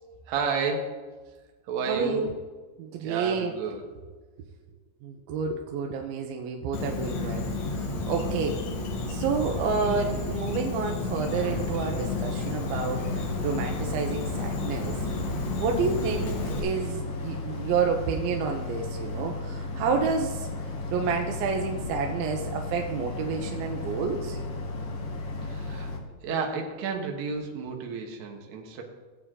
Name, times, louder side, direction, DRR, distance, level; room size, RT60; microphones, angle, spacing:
voice 1, 0.3-1.1 1.7-2.3 3.0-3.9 8.1-8.5 25.4-25.9 26.2-28.8, right 5 dB, 60° right, 2 dB, 2.2 m, -32 dB
voice 2, 1.9-2.3 2.8-3.5 5.0-8.6 9.1-15.0 15.6-20.5 20.9-24.4, right 5 dB, 80° right, 3 dB, 2.5 m, -29 dB
Insect, 6.7-16.6, left 3 dB, 60° left, 2.1 m, -32 dB
Boat Water vehicle, 11.3-26.0, left 2 dB, 75° left, 1.3 m, -34 dB
17.0 x 8.3 x 3.8 m, 1.4 s
omnidirectional pair, 4.6 m